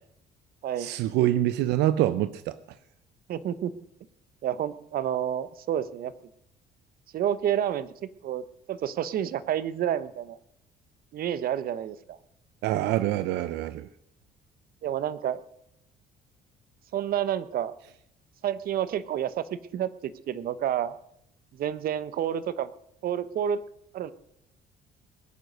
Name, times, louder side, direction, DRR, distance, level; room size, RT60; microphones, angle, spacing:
voice 1, 0.8-2.6 12.6-13.9, right 13 dB, 85° right, 0.7 m, -25 dB
voice 2, 3.3-3.7 4.4-6.1 7.1-7.9 8.2-8.4 8.7-10.4 11.1-12.2 14.8-15.4 16.9-17.7 18.4-19.4 19.7-20.9 21.6-22.7 23.0-23.6 23.9-24.1, right 10 dB, 60° right, 1.0 m, -29 dB
21.0 x 9.4 x 6.4 m
cardioid pair, 110°, 17 cm